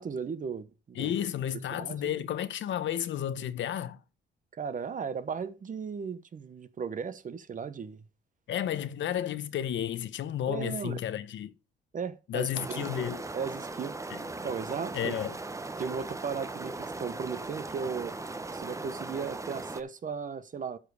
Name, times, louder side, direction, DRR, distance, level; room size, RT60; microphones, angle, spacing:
voice 1, 0.0-1.2 1.7-2.2 4.6-8.0 10.4-11.0 11.9-13.1 13.3-14.0 14.4-15.2 15.8-18.2 18.5-20.8, right 6 dB, 40° right, 1.0 m, -36 dB
voice 2, 1.0-4.0 8.5-11.5 12.3-13.2 14.1-14.2 14.9-15.3, left 10 dB, 70° left, 0.9 m, -32 dB
sound 1, 12.5-19.8, right 2 dB, 15° right, 0.8 m, -39 dB
12.5 x 5.2 x 4.8 m
cardioid pair, 90°, 20 cm